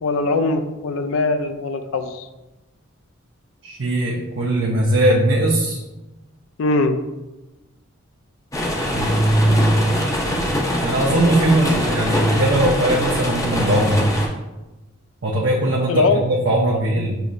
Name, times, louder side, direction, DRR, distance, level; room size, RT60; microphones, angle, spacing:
voice 1, 0.0-2.3 6.6-7.0 15.9-16.2, left 3 dB, 65° left, 8 dB, 0.4 m, -21 dB
voice 2, 3.6-5.8 8.9-9.9 10.8-14.0 15.2-17.2, right 1 dB, 55° right, -3 dB, 0.6 m, -19 dB
sound 1, 8.5-14.3, left 1 dB, 15° left, 0.5 m, -23 dB
6.9 x 3.0 x 2.5 m, 1.0 s
head